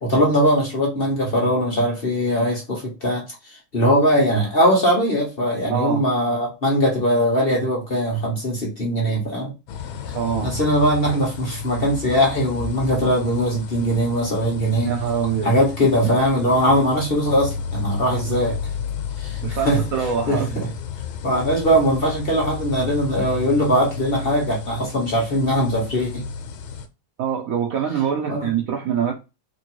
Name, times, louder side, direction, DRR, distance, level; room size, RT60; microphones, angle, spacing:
voice 1, 0.0-9.5 10.1-10.2 10.4-14.9 15.4-18.5 19.2-19.8 20.3-20.7 21.2-26.2 28.3-28.5, equal, 35° left, 1.1 m, -20 dB
voice 2, 5.7-6.0 10.1-10.5 14.8-15.5 18.1-18.4 19.4-20.6 27.2-29.1, right 7 dB, 70° right, 0.8 m, -24 dB
sound 1, 9.7-26.9, left 6 dB, 90° left, 1.4 m, -32 dB
3.3 x 2.8 x 4.4 m
omnidirectional pair, 2.2 m